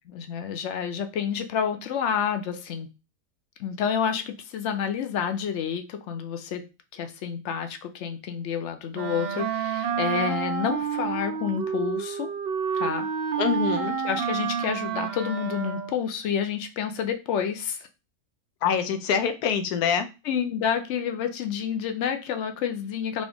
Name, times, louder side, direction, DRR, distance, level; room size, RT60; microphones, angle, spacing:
voice 1, 0.1-2.9 3.6-6.6 6.9-12.3 12.7-13.1 14.0-17.8 20.2-23.2, left 8 dB, 65° left, 7 dB, 0.7 m, -29 dB
Wind instrument woodwind instrument, 8.9-16.1, right 7 dB, 60° right, 0.7 m, -29 dB
voice 2, 13.4-14.0 18.6-20.1, left 7 dB, 90° left, 9 dB, 1.1 m, -25 dB
3.9 x 2.4 x 3.4 m, 0.28 s
omnidirectional pair, 1.5 m